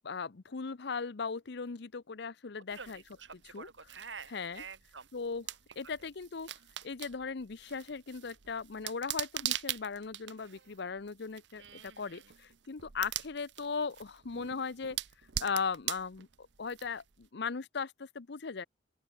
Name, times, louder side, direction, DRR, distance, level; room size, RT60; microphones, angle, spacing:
voice 1, 0.0-3.0 3.4-3.7 4.3-4.6 5.1-5.5 5.8-6.5 6.8-15.0 15.4-18.6, left 5 dB, 65° left, 0.7 m, -38 dB
sound 1, 2.7-17.3, right 13 dB, 70° right, 0.9 m, -43 dB
voice 2, 2.7-5.1 11.6-12.2, right 5 dB, 85° right, 4.5 m, -48 dB
open air
head